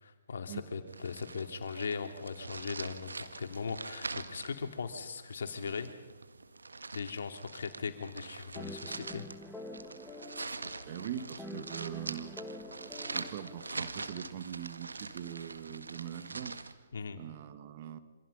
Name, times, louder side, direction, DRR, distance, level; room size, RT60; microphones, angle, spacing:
voice 1, 0.0-5.9 6.9-9.3 16.9-17.2, left 5 dB, 60° left, 6 dB, 2.8 m, -39 dB
sound 1, 0.9-16.7, right 3 dB, 75° right, 1.6 m, -44 dB
sound 2, 8.5-14.2, left 1 dB, 5° left, 1.7 m, -47 dB
voice 2, 10.9-12.4 13.1-16.8 17.1-18.0, right 10 dB, 40° right, 10 dB, 1.7 m, -42 dB
27.5 x 25.5 x 5.5 m, 1.3 s
figure-of-eight pair, 130°, 0 cm